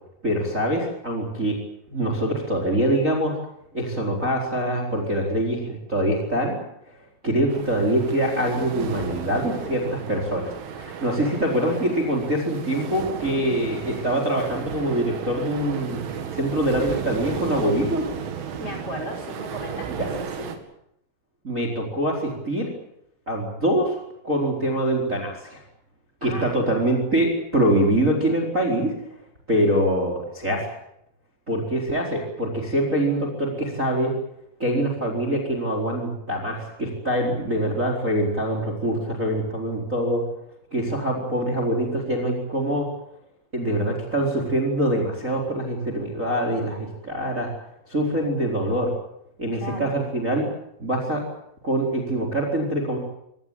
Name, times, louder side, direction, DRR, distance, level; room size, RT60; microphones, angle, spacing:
voice 1, 0.2-1.6 1.9-3.4 3.7-6.5 7.2-16.0 16.3-18.1 19.9-20.1 21.4-22.7 23.3-24.0 24.2-25.6 26.2-29.2 29.5-30.7 31.5-34.1 34.6-40.2 40.7-42.9 43.5-47.5 47.9-48.9 49.4-50.4 50.8-51.2 51.6-53.0, right 1 dB, 15° right, 0 dB, 4.2 m, -24 dB
sound 1, 7.5-20.6, right 7 dB, 70° right, 4.8 m, -34 dB
voice 2, 18.6-20.5 26.2-26.5 49.5-49.9, left 1 dB, 30° left, 1 dB, 6.3 m, -36 dB
25.0 x 20.0 x 8.9 m, 0.77 s
omnidirectional pair, 5.9 m